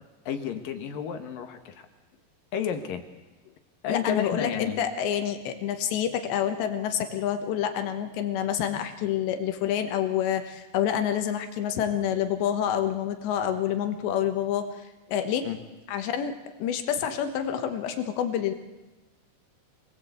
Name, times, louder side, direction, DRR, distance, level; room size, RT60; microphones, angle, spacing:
voice 1, 0.3-1.7 2.5-3.0 3.8-4.8 15.4-15.6, left 8 dB, 60° left, 6 dB, 2.8 m, -31 dB
voice 2, 3.9-15.5 15.9-18.5, left 9 dB, 85° left, 7 dB, 3.5 m, -28 dB
26.5 x 19.5 x 8.2 m, 1.2 s
omnidirectional pair, 4.9 m